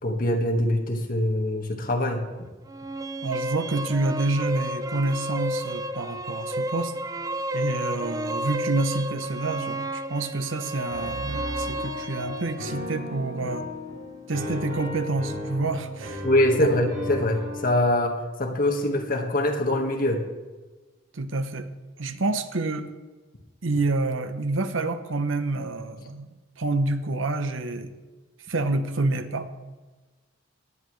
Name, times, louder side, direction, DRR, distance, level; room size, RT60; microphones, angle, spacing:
voice 1, 0.0-2.3 16.2-20.2, left 1 dB, 45° left, 2 dB, 1.7 m, -23 dB
sound 1, 2.7-12.6, right 1 dB, 20° right, 0.4 m, -32 dB
voice 2, 3.2-6.9 7.5-13.7 14.3-16.2 16.6-16.7 21.1-21.7 22.0-22.9 23.6-27.9 28.5-29.5, right 2 dB, 85° right, 10 dB, 1.0 m, -28 dB
Piano, 10.9-17.7, left 1 dB, 60° right, 4.6 m, -35 dB
18.0 x 11.0 x 3.3 m, 1.3 s
head